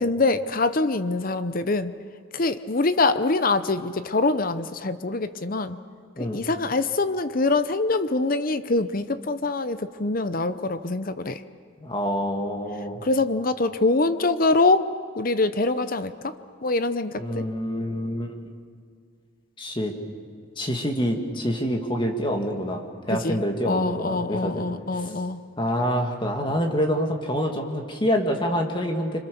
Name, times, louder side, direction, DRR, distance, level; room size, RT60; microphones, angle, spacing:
voice 1, 0.0-2.0 2.3-5.8 6.2-11.4 13.0-14.8 15.2-16.3 16.6-17.5 23.1-23.4 23.6-25.4, left 3 dB, 40° left, 12 dB, 0.7 m, -24 dB
voice 2, 11.8-13.0 17.2-18.5 19.6-19.9 20.6-24.6 25.0-25.1 25.6-29.2, equal, 20° left, 3 dB, 2.2 m, -26 dB
26.5 x 26.0 x 7.0 m, 2.1 s
head